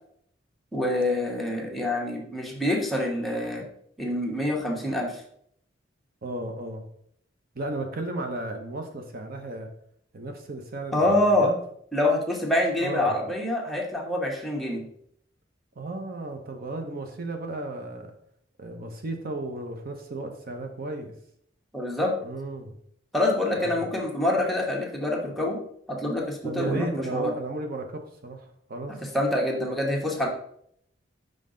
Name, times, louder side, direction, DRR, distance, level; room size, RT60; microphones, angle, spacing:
voice 1, 0.7-3.6 4.0-5.2 10.9-11.5 11.9-14.8 21.7-22.1 23.1-25.6 25.9-27.3 29.1-30.3, left 1 dB, ahead, -2 dB, 1.2 m, -26 dB
voice 2, 6.2-6.8 7.5-9.7 10.1-11.6 12.8-13.2 15.8-18.1 18.6-21.1 22.2-22.7 23.5-23.8 26.4-29.0, right 2 dB, 50° right, 4 dB, 0.8 m, -34 dB
5.6 x 5.3 x 3.8 m, 0.68 s
head